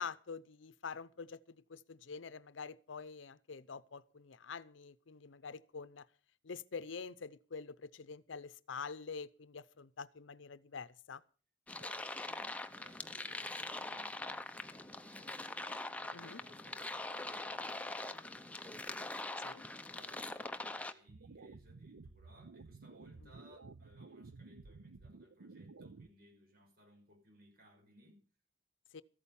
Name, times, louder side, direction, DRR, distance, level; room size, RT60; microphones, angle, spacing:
voice 1, 0.0-6.1 6.4-11.2 16.1-16.4 19.4-19.6 23.2-23.3 28.9-29.0, left 5 dB, 75° left, 0.6 m, -46 dB
sound 1, 11.7-20.9, left 2 dB, 5° left, 0.7 m, -43 dB
voice 2, 11.7-15.4 16.0-18.8 19.9-28.2, equal, 50° right, 5.8 m, -63 dB
sound 2, 21.1-26.1, right 3 dB, 90° right, 0.6 m, -54 dB
14.0 x 8.8 x 7.0 m
head